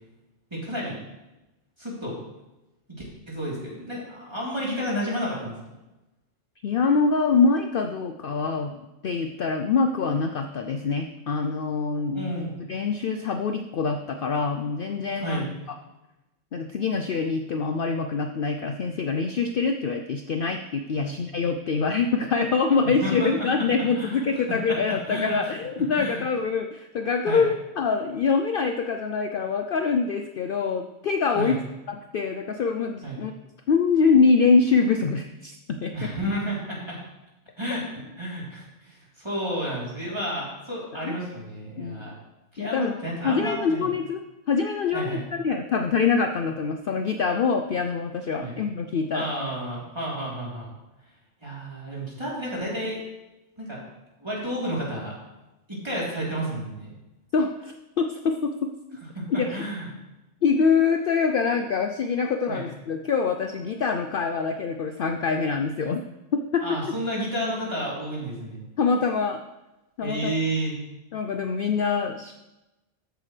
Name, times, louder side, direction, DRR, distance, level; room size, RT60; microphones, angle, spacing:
voice 1, 0.5-1.0 1.8-2.2 3.3-5.5 11.9-12.5 15.1-15.5 20.9-21.1 23.0-23.3 23.9-24.2 24.7-24.8 25.1-25.4 26.0-26.2 27.2-27.4 31.3-31.6 33.0-33.2 35.9-37.0 37.6-42.1 42.5-43.9 44.9-45.2 48.4-48.5 49.1-50.7 51.4-53.0 53.6-53.8 54.2-55.1 55.7-56.9 59.3-59.9 62.5-62.6 66.6-68.6 70.0-70.7, equal, 20° right, -6 dB, 3.5 m, -31 dB
voice 2, 6.6-15.4 16.5-31.6 32.1-33.3 33.7-36.1 41.0-41.2 41.8-42.0 42.6-43.0 43.2-44.2 44.5-49.3 57.3-58.7 59.3-59.6 60.4-66.0 66.3-66.8 68.8-69.4 70.0-70.3 71.1-72.3, left 5 dB, 55° left, 6 dB, 0.7 m, -25 dB
13.5 x 8.8 x 3.3 m, 1.0 s
omnidirectional pair, 1.3 m